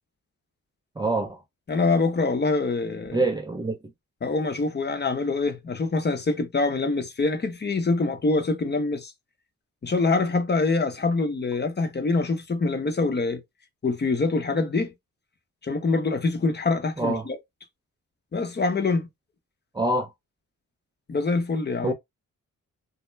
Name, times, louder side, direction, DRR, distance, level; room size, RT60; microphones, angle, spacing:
voice 1, 1.0-1.4 3.1-3.8 17.0-17.3 19.7-20.1 21.8-21.9, right 2 dB, 15° right, 0.4 m, -25 dB
voice 2, 1.7-3.2 4.2-9.1 9.8-13.4 13.8-14.9 15.6-17.4 18.3-19.1 21.1-21.9, left 3 dB, 30° left, 0.7 m, -25 dB
2.2 x 2.1 x 3.1 m
cardioid pair, 60°, 34 cm